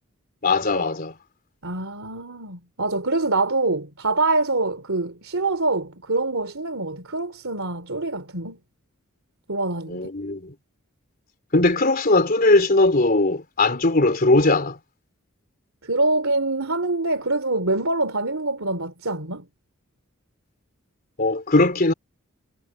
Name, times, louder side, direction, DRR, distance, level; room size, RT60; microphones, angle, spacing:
voice 1, 0.4-1.1 9.9-10.5 11.5-14.8 21.2-21.9, left 2 dB, 45° left, 3.6 m, -19 dB
voice 2, 1.6-8.6 9.5-10.0 15.8-19.4, right 2 dB, 75° right, 3.3 m, -25 dB
head